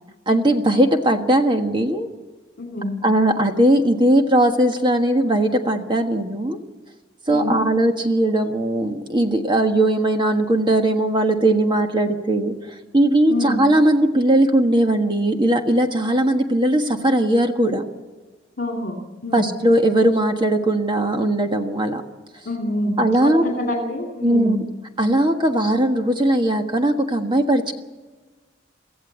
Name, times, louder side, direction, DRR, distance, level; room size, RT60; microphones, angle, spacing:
voice 1, 0.3-2.1 3.0-6.6 7.3-12.5 12.9-17.8 19.3-22.0 23.0-23.5 24.2-24.6 25.0-27.7, right 1 dB, 25° right, 5 dB, 1.5 m, -19 dB
voice 2, 2.6-3.0 7.3-7.6 13.3-13.6 18.6-19.0 19.2-19.5 22.4-23.0 23.2-24.6, left 1 dB, 50° left, 2 dB, 2.8 m, -26 dB
24.0 x 15.0 x 8.1 m, 1.3 s
head